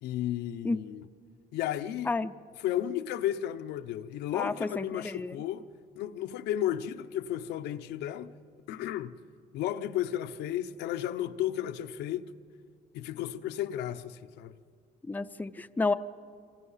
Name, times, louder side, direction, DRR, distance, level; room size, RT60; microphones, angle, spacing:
voice 1, 0.0-1.1 1.5-2.1 2.6-5.7 6.0-8.3 8.7-9.2 9.5-12.3 12.9-14.5, left 11 dB, 85° left, 0.8 m, -33 dB
voice 2, 4.3-5.4 15.1-15.9, left 3 dB, 10° left, 0.6 m, -30 dB
27.5 x 24.0 x 5.7 m
cardioid pair, 110°, 17 cm